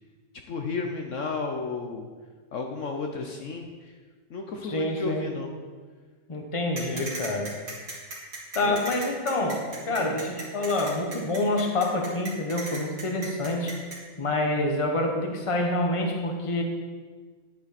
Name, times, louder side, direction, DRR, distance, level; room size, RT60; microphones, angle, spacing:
voice 1, 0.5-2.1 2.5-4.0 4.3-5.5 8.6-8.8 9.9-10.1, left 4 dB, 60° left, 3 dB, 1.1 m, -33 dB
voice 2, 4.7-5.3 6.3-7.6 8.5-13.8 14.2-16.6, left 2 dB, 25° left, 3 dB, 1.1 m, -27 dB
sound 1, 6.8-14.0, right 2 dB, 55° right, 2.8 m, -37 dB
11.0 x 8.5 x 4.2 m, 1.5 s
omnidirectional pair, 1.5 m